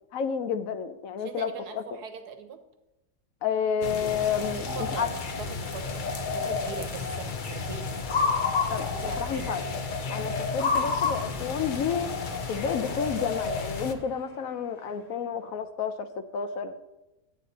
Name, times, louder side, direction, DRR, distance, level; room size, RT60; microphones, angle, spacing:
voice 1, 0.1-1.8 3.4-5.1 8.7-8.9 9.2-9.6 10.1-12.1 12.5-16.7, left 6 dB, 70° left, 10 dB, 1.0 m, -30 dB
voice 2, 1.2-2.6 4.4-8.0 8.7-9.7, right 6 dB, 80° right, 8 dB, 1.5 m, -41 dB
sound 1, 3.8-13.9, left 4 dB, 50° left, 0.6 m, -30 dB
sound 2, 10.4-15.6, left 2 dB, 25° left, 1.4 m, -48 dB
11.5 x 8.3 x 4.0 m, 0.98 s
omnidirectional pair, 1.7 m